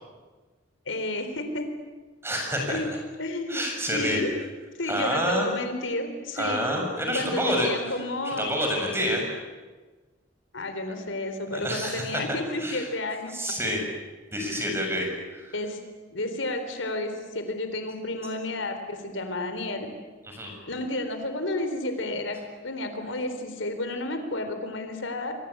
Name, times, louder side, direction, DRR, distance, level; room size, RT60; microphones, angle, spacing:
voice 1, 0.9-1.7 2.7-2.9 3.2-3.6 3.9-4.3 4.8-6.7 7.1-8.5 10.5-13.3 15.5-15.8 16.1-19.9 20.7-22.4 22.6-25.3, left 2 dB, 85° left, 7 dB, 4.0 m, -31 dB
voice 2, 2.2-2.8 3.5-4.2 4.9-5.5 6.4-7.7 8.3-9.2 11.5-12.2 12.6-12.8 13.3-13.8 14.3-15.5 20.3-20.5, equal, 15° right, 1 dB, 7.0 m, -28 dB
29.0 x 23.5 x 8.5 m, 1.3 s
head